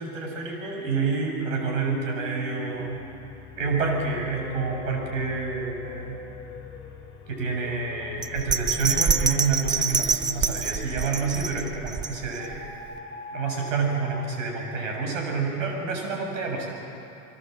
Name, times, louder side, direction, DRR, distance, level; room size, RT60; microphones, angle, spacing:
voice 1, 0.0-3.0 3.6-6.2 7.3-12.6 13.3-16.7, right 4 dB, 90° right, 1 dB, 6.3 m, -28 dB
sound 1, 1.6-11.8 12.4-15.1, left 4 dB, 30° left, 3.7 m, -42 dB
Bell, 8.2-12.6 13.0-13.1, right 5 dB, 10° right, 0.5 m, -26 dB
23.0 x 19.5 x 7.7 m, 2.9 s
supercardioid pair, 120°, 37 cm